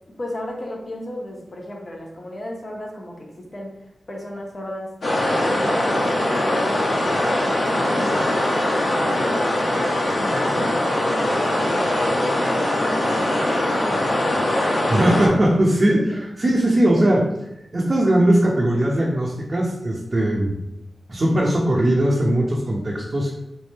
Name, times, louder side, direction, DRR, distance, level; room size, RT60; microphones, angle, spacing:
voice 1, 0.2-3.7 4.1-4.9 5.2-15.1, left 1 dB, 50° left, -1 dB, 1.1 m, -35 dB
sound 1, 5.0-15.3, left 1 dB, 75° left, 1.1 m, -21 dB
voice 2, 14.9-17.3 17.7-20.5 21.1-23.3, right 1 dB, 50° right, -5 dB, 0.9 m, -19 dB
3.4 x 2.6 x 4.2 m, 0.84 s
cardioid pair, 40°, 0 cm